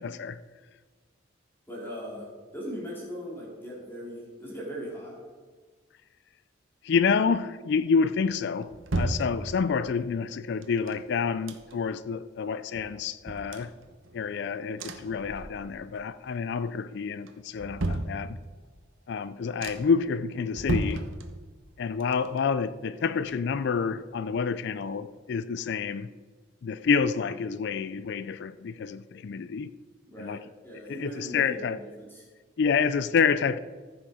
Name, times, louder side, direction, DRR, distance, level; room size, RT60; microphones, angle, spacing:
voice 1, 0.0-0.4 6.8-13.7 14.1-18.4 19.1-21.0 21.8-26.1 26.6-29.7 30.2-30.4 30.9-31.8 32.6-33.6, left 5 dB, 55° left, 0.3 m, -28 dB
voice 2, 1.7-2.3 2.5-5.2 30.1-32.2, equal, 10° left, 2.8 m, -39 dB
sound 1, 8.2-9.9 10.6-12.0 12.4-12.5 12.7-14.4 14.8-16.0 16.3-16.8 17.2-18.7 19.2-19.3 19.6-20.1 20.5-21.7 22.0-23.8 24.1-24.2, right 2 dB, 80° right, 1.0 m, -35 dB
14.5 x 6.4 x 4.9 m
head